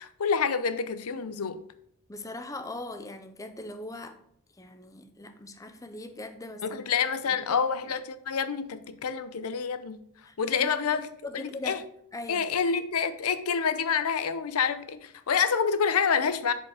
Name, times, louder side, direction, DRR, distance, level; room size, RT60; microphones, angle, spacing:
voice 1, 0.0-1.6 6.6-10.0 10.4-11.8 12.3-16.5, left 6 dB, 80° left, 0.6 m, -28 dB
voice 2, 2.1-4.2 4.6-6.8 7.5-7.6 10.2-11.8 12.1-12.5, left 2 dB, 15° left, 0.5 m, -40 dB
7.4 x 5.0 x 3.7 m
head